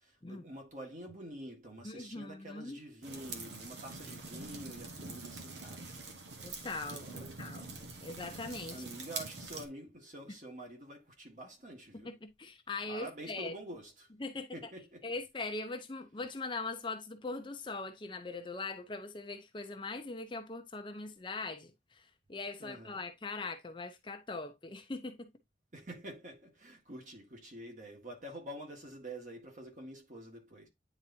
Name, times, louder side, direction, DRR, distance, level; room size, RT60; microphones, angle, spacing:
voice 1, 0.0-6.3 6.9-7.4 8.7-12.1 12.9-14.1 14.5-15.1 22.6-23.0 25.7-30.7, right 1 dB, 45° right, 1.8 m, -47 dB
voice 2, 1.8-2.8 6.4-7.7 8.0-8.9 12.0-13.5 14.2-14.5 15.0-25.3, left 3 dB, 25° left, 0.6 m, -41 dB
sound 1, 3.0-9.7, right 3 dB, 85° right, 1.4 m, -45 dB
9.4 x 4.0 x 2.8 m
head